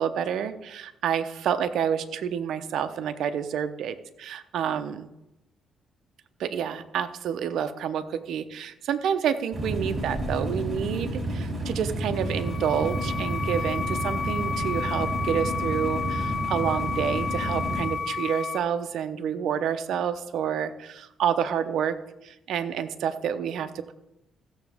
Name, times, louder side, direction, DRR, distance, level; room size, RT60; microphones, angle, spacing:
voice 1, 0.0-5.1 6.4-22.0 22.2-23.9, right 8 dB, 75° right, 9 dB, 0.8 m, -29 dB
sound 1, 9.5-17.9, right 1 dB, 35° right, 3.8 m, -30 dB
sound 2, 12.1-18.6, left 5 dB, 65° left, 2.0 m, -32 dB
16.0 x 7.1 x 3.6 m, 0.89 s
cardioid pair, 90°, 0 cm